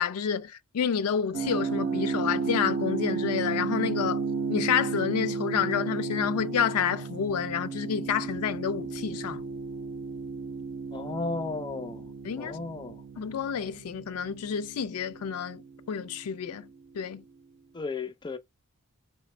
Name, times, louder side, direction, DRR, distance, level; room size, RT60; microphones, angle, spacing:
voice 1, 0.0-4.2 4.5-9.4 12.2-12.6 13.2-15.6 15.9-16.7 16.9-17.2, left 7 dB, 90° left, 0.4 m, -29 dB
sound 1, 1.3-16.1, right 4 dB, 55° right, 0.5 m, -33 dB
voice 2, 10.9-12.1 12.4-13.0 17.7-18.4, left 3 dB, 20° left, 0.4 m, -34 dB
3.2 x 3.0 x 3.2 m
head